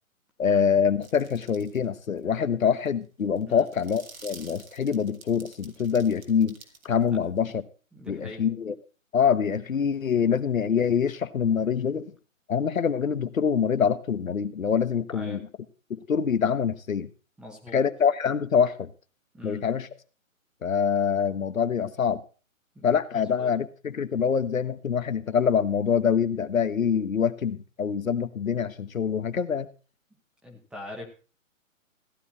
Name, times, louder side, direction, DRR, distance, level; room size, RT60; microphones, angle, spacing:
voice 1, 0.4-6.6 6.8-7.6 8.1-8.7 9.1-12.1 12.5-15.4 15.9-17.1 17.7-18.9 19.4-19.9 20.6-22.2 22.8-29.7, left 7 dB, 80° left, 11 dB, 1.3 m, -25 dB
sound 1, 1.0-1.9 2.2-2.3 2.7-7.5, right 4 dB, 80° right, 2.8 m, -50 dB
voice 2, 7.9-8.4 15.1-15.4 17.4-17.8 19.3-19.6 22.7-22.9 23.1-23.5 30.4-31.1, left 1 dB, ahead, 1 dB, 1.0 m, -42 dB
15.0 x 9.9 x 4.2 m, 0.36 s
hypercardioid pair, 155°, 40 cm